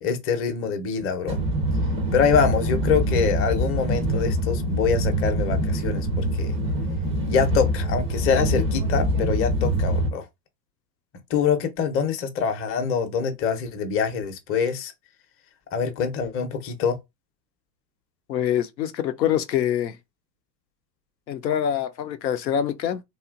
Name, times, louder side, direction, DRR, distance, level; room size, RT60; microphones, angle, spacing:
voice 1, 0.0-1.4 2.1-6.6 7.3-10.3 11.3-14.9 15.7-17.0, left 6 dB, 25° left, 0.6 m, -25 dB
sound 1, 1.3-10.1, right 1 dB, 15° right, 0.3 m, -24 dB
voice 2, 18.3-20.0 21.3-23.0, left 10 dB, 90° left, 0.6 m, -25 dB
2.8 x 2.4 x 2.4 m
hypercardioid pair, 95°, 50 cm